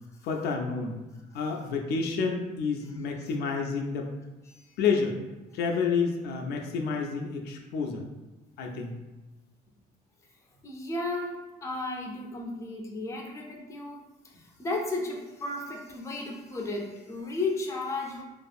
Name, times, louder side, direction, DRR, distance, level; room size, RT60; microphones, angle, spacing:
voice 1, 0.2-1.0 1.3-4.1 4.8-5.2 5.5-8.1 8.6-8.9, left 5 dB, 75° left, 2 dB, 0.4 m, -29 dB
voice 2, 10.6-18.2, left 2 dB, 15° left, -1 dB, 0.5 m, -34 dB
2.6 x 2.4 x 2.3 m, 1.1 s
cardioid pair, 110°, 17 cm